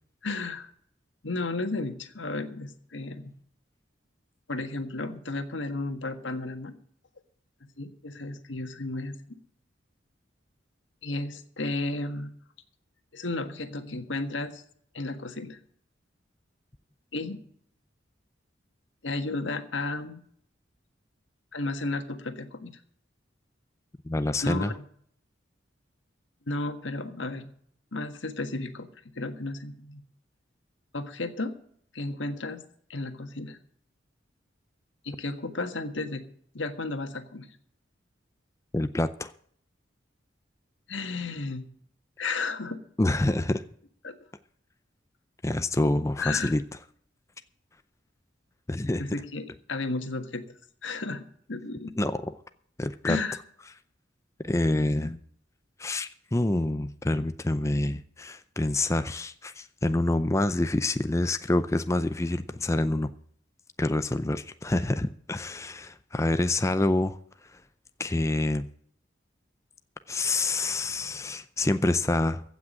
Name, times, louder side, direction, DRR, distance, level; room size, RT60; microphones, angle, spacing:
voice 1, 0.2-0.7 1.2-3.3 4.5-6.7 7.8-9.1 11.0-12.3 13.1-14.6 14.9-15.6 17.1-17.4 19.0-20.2 21.5-22.7 24.4-24.8 26.5-27.5 27.9-28.9 29.1-30.0 30.9-31.5 31.9-32.6 32.9-33.6 35.0-36.2 36.5-37.5 40.9-41.6 42.2-42.8 44.0-44.1 46.2-46.5 49.0-50.4 50.8-51.9 53.0-53.4, left 2 dB, 80° left, 8 dB, 1.6 m, -33 dB
voice 2, 24.1-24.7 38.7-39.3 43.0-43.6 45.4-46.6 48.7-49.0 52.0-52.3 52.8-53.2 54.4-55.2 55.8-63.1 63.8-67.2 68.0-68.7 70.1-72.4, left 2 dB, 15° left, 10 dB, 0.5 m, -27 dB
15.5 x 6.1 x 8.8 m, 0.62 s
head